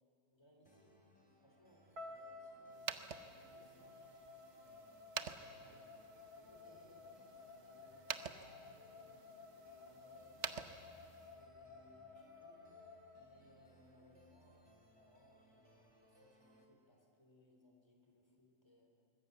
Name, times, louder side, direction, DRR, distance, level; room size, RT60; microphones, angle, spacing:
voice 1, 0.3-1.0 1.4-2.7 3.2-4.4 5.2-5.8 6.2-18.9, left 1 dB, 15° left, 2 dB, 3.8 m, -68 dB
sound 1, 0.7-16.7, equal, 15° right, 3.0 m, -68 dB
sound 2, 2.0-14.1, left 3 dB, 80° right, 2.9 m, -56 dB
sound 3, 2.7-11.4, right 7 dB, 55° right, 1.2 m, -49 dB
25.0 x 20.5 x 8.2 m, 2.5 s
omnidirectional pair, 1.6 m